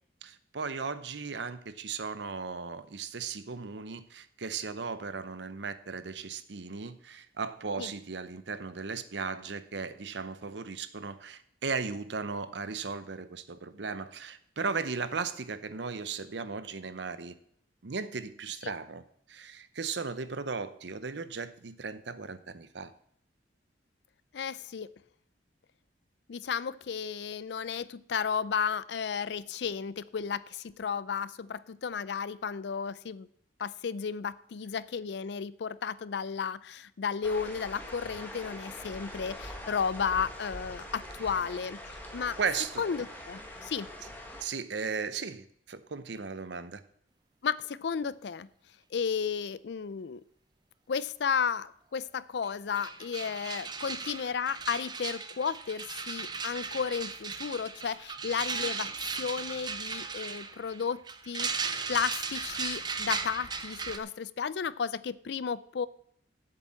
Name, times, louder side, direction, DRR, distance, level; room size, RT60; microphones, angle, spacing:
voice 1, 0.2-17.3 17.8-19.0 19.3-22.9 42.4-42.8 44.4-46.8, right 5 dB, 70° right, 13 dB, 0.7 m, -36 dB
voice 2, 24.3-24.9 26.3-33.3 33.6-42.4 42.8-43.9 47.4-48.5 48.9-50.2 50.9-58.9 59.2-65.9, left 6 dB, 65° left, 18 dB, 0.4 m, -33 dB
sound 1, 37.2-44.4, left 1 dB, 10° left, 1.6 m, -43 dB
sound 2, 52.4-52.5 52.7-64.0, right 5 dB, 25° right, 0.6 m, -37 dB
8.2 x 7.6 x 7.5 m, 0.67 s
head